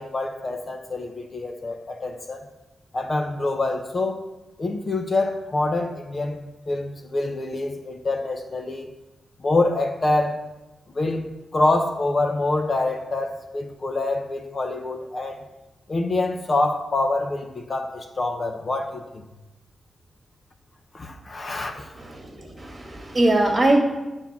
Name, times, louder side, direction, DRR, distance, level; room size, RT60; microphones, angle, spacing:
voice 1, 0.0-2.4 2.9-4.2 4.6-8.9 9.4-10.4 10.9-11.2 11.5-15.4 15.9-19.2 20.9-21.9, left 2 dB, 40° left, 4 dB, 1.0 m, -26 dB
voice 2, 21.9-23.8, right 1 dB, 30° right, 2 dB, 2.0 m, -21 dB
10.0 x 4.5 x 7.3 m, 1.1 s
wide cardioid pair, 105°, 0 cm